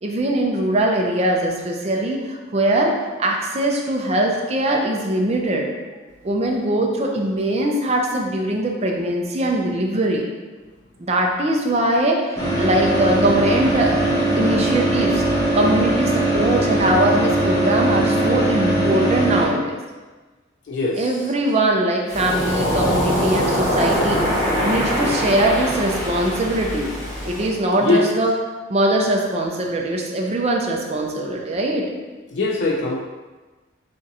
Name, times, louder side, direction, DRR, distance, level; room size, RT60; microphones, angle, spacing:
voice 1, 0.0-5.7 6.2-10.2 11.0-14.0 14.3-15.2 15.5-19.7 21.0-24.2 24.6-26.9 27.3-28.3 28.7-31.9, right 1 dB, 35° right, 0 dB, 0.5 m, -21 dB
sound 1, 12.4-19.4, right 1 dB, 15° left, 0.9 m, -20 dB
voice 2, 20.7-21.2 27.8-28.1 32.3-33.0, left 3 dB, 65° left, -1 dB, 0.4 m, -21 dB
Waves surf, 22.1-27.5, equal, 45° left, 1.1 m, -22 dB
3.6 x 2.6 x 4.0 m, 1.3 s
head